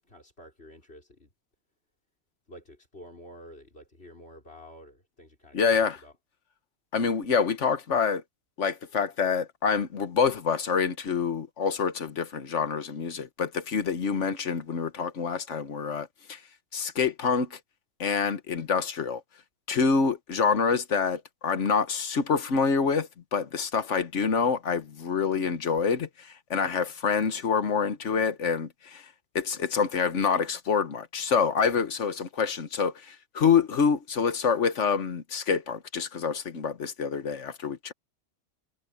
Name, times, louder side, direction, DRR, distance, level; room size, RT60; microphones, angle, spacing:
voice 1, 0.0-1.3 2.5-6.2, equal, 55° left, 5.3 m, -49 dB
voice 2, 5.5-6.0 6.9-8.2 8.6-16.4 16.7-17.6 18.0-19.2 19.7-29.0 29.3-37.9, left 6 dB, 70° left, 1.5 m, -26 dB
omnidirectional pair, 1.3 m